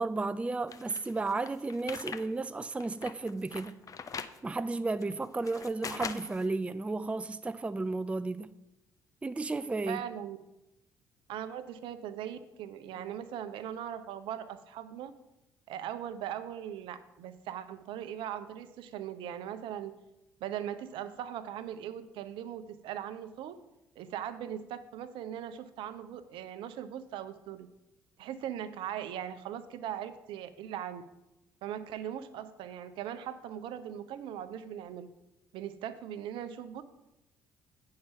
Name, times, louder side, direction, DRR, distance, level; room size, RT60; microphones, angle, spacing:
voice 1, 0.0-3.8 4.4-8.5 9.2-10.0 13.0-13.1, right 3 dB, 15° right, 0.4 m, -33 dB
sound 1, 0.7-2.3 2.6-4.4 5.0-6.5, left 6 dB, 35° left, 0.6 m, -41 dB
voice 2, 9.9-10.4 11.3-15.1 15.7-20.0 20.4-23.6 24.0-27.7 28.2-31.0 31.6-35.1 35.5-36.8, right 10 dB, 60° right, 0.7 m, -39 dB
8.7 x 5.7 x 5.6 m
figure-of-eight pair, 50°, 10 cm